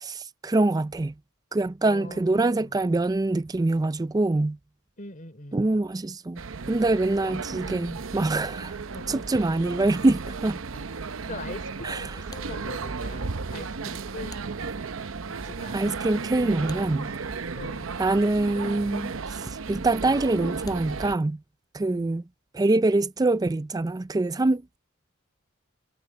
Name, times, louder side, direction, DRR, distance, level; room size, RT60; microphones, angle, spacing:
voice 1, 0.0-1.1 1.5-4.6 5.5-6.4 6.7-8.8 9.1-10.6 11.8-12.1 15.7-17.1 18.0-21.4 21.7-22.2 22.5-24.6, right 2 dB, 20° right, 0.4 m, -24 dB
voice 2, 1.8-2.8 5.0-5.7 7.2-7.3 7.7-8.1 8.9-9.1 10.7-10.8 11.2-14.4 15.3-15.9 17.5-17.9 21.8-22.2, left 2 dB, 40° left, 4.0 m, -42 dB
sound 1, 6.4-21.2, right 4 dB, 75° right, 0.8 m, -34 dB
sound 2, 14.3-15.1 16.6-17.7 20.6-21.5, left 2 dB, 20° left, 4.8 m, -50 dB
head